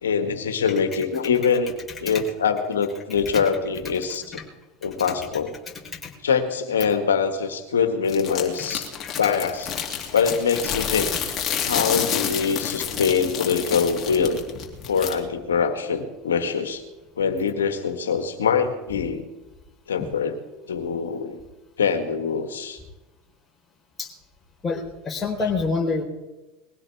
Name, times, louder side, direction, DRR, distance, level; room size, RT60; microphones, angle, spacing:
voice 1, 0.0-1.7 2.0-4.4 4.8-5.5 6.2-8.9 9.2-9.7 10.1-11.1 11.6-14.4 14.9-16.8 17.2-19.2 19.9-20.4 20.7-21.4 21.8-22.8, left 6 dB, 85° left, 7 dB, 1.8 m, -23 dB
sound 1, 8.1-15.1, left 8 dB, 40° left, 2.9 m, -29 dB
voice 2, 24.6-26.0, left 4 dB, 20° left, 0 dB, 4.3 m, -27 dB
21.0 x 16.0 x 3.6 m, 1.1 s
hypercardioid pair, 80°, 0 cm